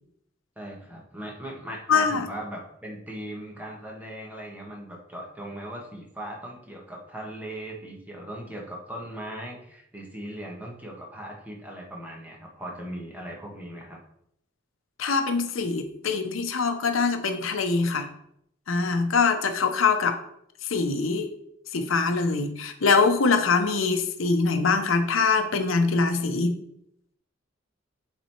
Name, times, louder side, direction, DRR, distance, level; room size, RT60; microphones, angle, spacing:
voice 1, 0.6-14.0, right 1 dB, 10° right, -2 dB, 1.4 m, -39 dB
voice 2, 1.9-2.3 15.0-18.1 18.7-20.2 20.6-21.3 21.7-26.6, left 4 dB, 80° left, 7 dB, 0.8 m, -23 dB
7.5 x 4.1 x 4.5 m, 0.73 s
head